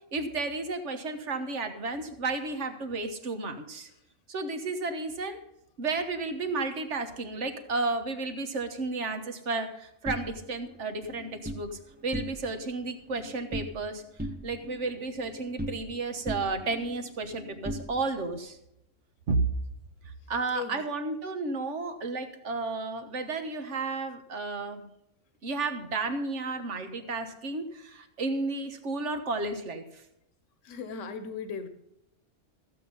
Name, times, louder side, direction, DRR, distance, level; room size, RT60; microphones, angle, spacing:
voice 1, 0.1-3.9 4.3-5.4 5.8-14.0 14.4-18.6 19.3-19.4 20.3-24.8 25.4-30.0, right 3 dB, 70° right, 7 dB, 1.6 m, -32 dB
sound 1, 10.0-11.7 12.0-12.7 12.9-13.9 14.2-16.0 16.3-18.4, right 1 dB, 10° right, 0.7 m, -39 dB
voice 2, 20.5-20.8 30.6-31.7, left 5 dB, 80° left, 10 dB, 1.4 m, -37 dB
15.0 x 8.1 x 5.4 m, 0.82 s
omnidirectional pair, 1.3 m